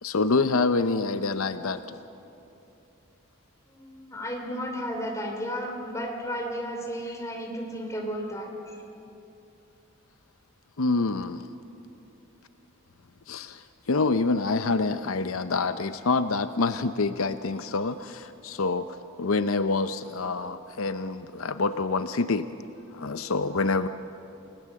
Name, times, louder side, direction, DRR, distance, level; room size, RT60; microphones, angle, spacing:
voice 1, 0.0-2.0 10.8-11.5 13.3-22.5 22.9-23.9, left 3 dB, 75° left, 11 dB, 0.7 m, -27 dB
voice 2, 3.7-8.8, equal, 15° left, 1 dB, 2.9 m, -33 dB
29.0 x 18.5 x 7.6 m, 2.9 s
head